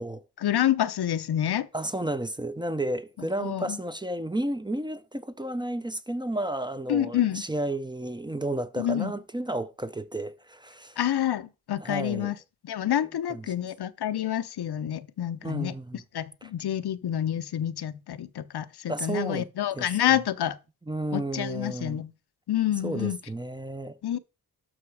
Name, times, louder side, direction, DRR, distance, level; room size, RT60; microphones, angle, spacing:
voice 1, 0.4-1.7 3.4-3.8 6.9-7.4 8.8-9.1 11.0-12.4 12.6-20.6 21.1-22.1 22.5-23.2 24.0-24.2, left 11 dB, 85° left, 0.7 m, -28 dB
voice 2, 1.7-11.0 11.8-12.3 13.3-13.4 15.4-16.0 16.4-16.5 18.9-19.5 19.7-19.9 20.9-22.0 22.8-24.0, right 1 dB, 10° right, 0.6 m, -32 dB
12.0 x 5.7 x 4.7 m
wide cardioid pair, 125°, 38 cm